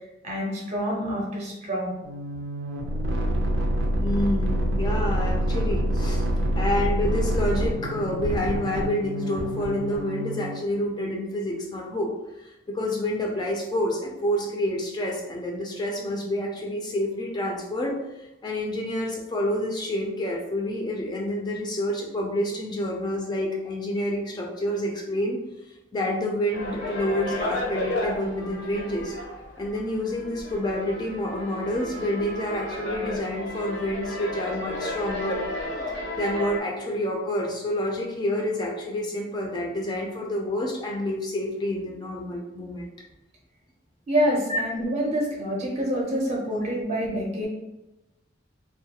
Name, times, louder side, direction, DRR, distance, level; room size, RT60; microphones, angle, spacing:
voice 1, 0.2-1.9 44.1-47.5, equal, 40° right, -2 dB, 0.5 m, -27 dB
sound 1, 2.0-10.7, equal, 90° right, 0.4 m, -26 dB
voice 2, 4.0-6.2 6.6-12.1 12.7-18.0 18.4-25.4 25.9-29.1 29.6-35.4 36.2-42.9 44.5-44.6, left 1 dB, 25° left, -1 dB, 0.3 m, -28 dB
sound 2, 26.5-36.6, left 1 dB, 75° left, 0.6 m, -33 dB
2.2 x 2.1 x 2.8 m, 0.96 s
head